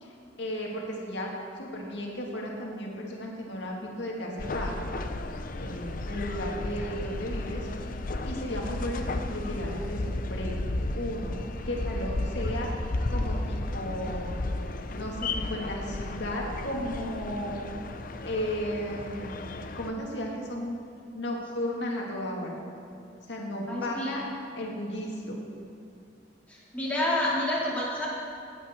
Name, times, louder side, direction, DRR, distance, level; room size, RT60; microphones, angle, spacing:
voice 1, 0.0-1.3 1.6-4.7 5.6-7.7 8.3-10.5 10.9-11.3 11.7-12.7 13.1-14.3 15.0-17.6 18.2-19.4 19.7-20.8 21.1-22.6 23.3-24.2 24.6-25.4, equal, 65° left, -1 dB, 2.2 m, -34 dB
sound 1, 4.4-19.9, left 2 dB, 45° left, 0.6 m, -33 dB
voice 2, 23.7-24.1 26.5-28.1, left 1 dB, 10° left, -7 dB, 3.1 m, -29 dB
16.5 x 9.0 x 4.6 m, 2.6 s
head